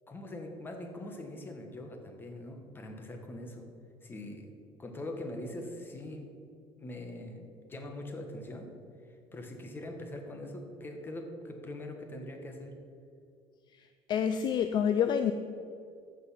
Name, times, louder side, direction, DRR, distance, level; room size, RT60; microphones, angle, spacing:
voice 1, 0.1-3.7 4.0-6.3 6.8-8.7 9.1-12.7, left 1 dB, 20° left, 3 dB, 1.4 m, -42 dB
voice 2, 13.7-15.3, left 8 dB, 40° left, 8 dB, 0.5 m, -28 dB
15.0 x 5.4 x 5.8 m, 2.4 s
cardioid pair, 145°, 12 cm